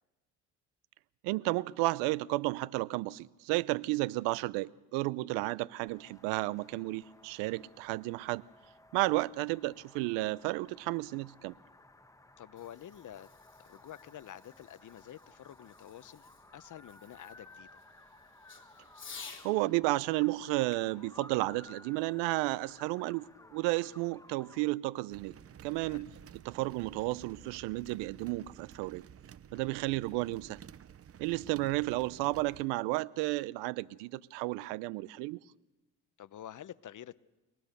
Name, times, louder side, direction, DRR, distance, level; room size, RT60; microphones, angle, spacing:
voice 1, 1.2-8.4 8.9-11.5 19.4-25.3 25.6-26.1 26.5-29.0 29.5-30.6 31.2-35.4, right 20 dB, 80° right, 0.7 m, -32 dB
sound 1, 5.9-24.7, left 2 dB, 10° left, 1.3 m, -57 dB
voice 2, 12.4-13.3 13.6-17.8 25.7-26.0 29.5-29.8 36.2-37.2, left 11 dB, 45° left, 0.9 m, -49 dB
Fireworks, 12.4-19.5 20.7-22.3, left 5 dB, 30° left, 3.2 m, -54 dB
sound 2, 25.1-32.7, right 9 dB, 35° right, 0.7 m, -52 dB
24.5 x 19.0 x 6.7 m
supercardioid pair, 65°, 42 cm